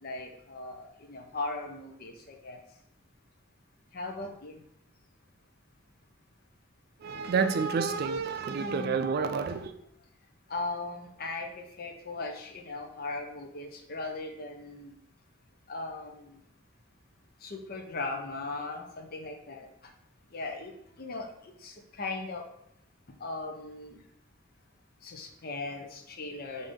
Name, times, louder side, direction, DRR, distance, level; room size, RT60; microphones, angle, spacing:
voice 1, 0.0-2.6 3.9-4.5 8.5-9.0 10.5-15.0 15.7-16.4 17.4-19.7 20.3-21.3 21.6-22.4 23.2-24.0 25.0-26.7, left 3 dB, 50° left, 3 dB, 0.6 m, -38 dB
voice 2, 7.0-9.7, right 5 dB, 50° right, 9 dB, 0.3 m, -29 dB
5.2 x 2.7 x 3.6 m, 0.75 s
head